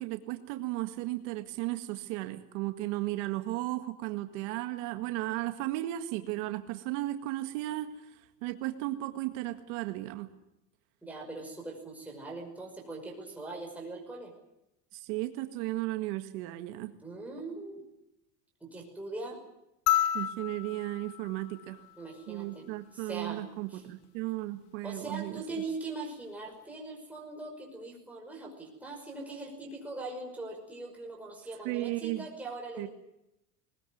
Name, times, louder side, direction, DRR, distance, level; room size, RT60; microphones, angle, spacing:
voice 1, 0.0-10.3 14.9-16.9 20.1-21.8 22.3-25.4 31.6-32.2 32.8-32.9, right 17 dB, 70° right, 7 dB, 1.9 m, -35 dB
voice 2, 11.0-14.3 17.0-17.8 18.6-19.4 22.0-23.4 23.7-23.8 24.8-32.9, right 3 dB, 5° right, -1 dB, 5.6 m, -41 dB
sound 1, 19.9-22.4 24.0-24.1, left 12 dB, 60° left, 2.1 m, -32 dB
20.5 x 20.0 x 9.3 m, 0.88 s
cardioid pair, 170°, 38 cm